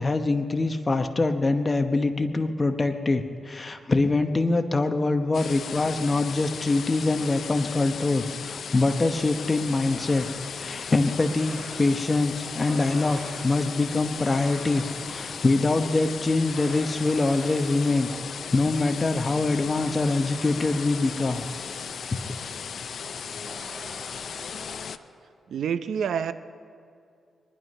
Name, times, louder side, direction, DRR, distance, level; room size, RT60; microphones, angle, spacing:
voice 1, 0.0-10.3 10.5-18.1 18.5-21.4, left 3 dB, 25° left, 7 dB, 0.9 m, -24 dB
sound 1, 5.3-25.0, left 7 dB, 65° left, 0.5 m, -37 dB
sound 2, 9.2-24.9, right 1 dB, 35° right, 4.8 m, -45 dB
voice 2, 25.5-26.3, right 7 dB, 80° right, 12 dB, 0.6 m, -27 dB
23.0 x 11.0 x 5.5 m, 2.4 s
cardioid pair, 100°, 0 cm